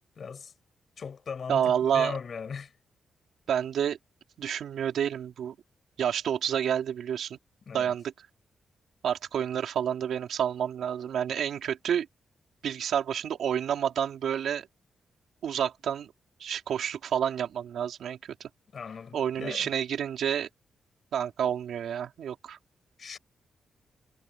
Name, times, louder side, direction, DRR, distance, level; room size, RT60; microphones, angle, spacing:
voice 1, 0.2-0.5 1.0-2.7 7.7-7.9 18.7-19.7 23.0-23.2, left 6 dB, 40° left, 7.5 m, -39 dB
voice 2, 1.5-2.2 3.5-4.0 4.4-5.5 6.0-7.4 7.7-8.1 9.0-12.1 12.6-14.7 15.4-16.1 16.4-18.5 19.1-20.5 21.1-22.6, right 9 dB, 75° right, 3.4 m, -29 dB
wide cardioid pair, 170°, 0 cm